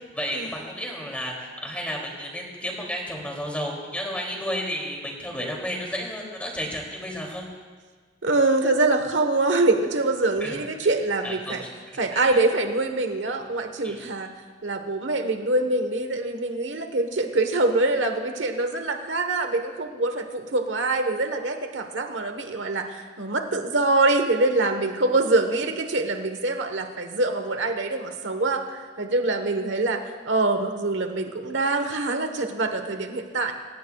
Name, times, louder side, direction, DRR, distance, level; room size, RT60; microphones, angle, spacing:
voice 1, 0.1-7.5 10.4-10.6 11.2-12.4 13.8-14.0, equal, 10° left, -1 dB, 2.8 m, -32 dB
voice 2, 8.2-11.6 12.0-14.3 14.6-33.5, right 2 dB, 80° right, 6 dB, 1.2 m, -24 dB
27.5 x 16.0 x 2.4 m, 1.5 s
head